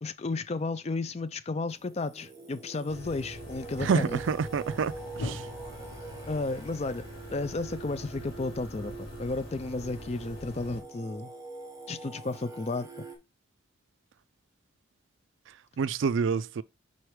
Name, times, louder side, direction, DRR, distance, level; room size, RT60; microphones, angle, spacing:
voice 1, 0.0-4.2 6.3-7.0 7.3-11.3 11.9-12.9, left 3 dB, 30° left, 0.4 m, -33 dB
Singing, 1.7-13.2, right 3 dB, 15° right, 1.0 m, -45 dB
sound 1, 2.9-10.8, left 1 dB, 90° left, 2.2 m, -43 dB
voice 2, 3.8-5.5 15.8-16.6, right 5 dB, 70° right, 0.4 m, -28 dB
4.7 x 4.2 x 4.9 m
head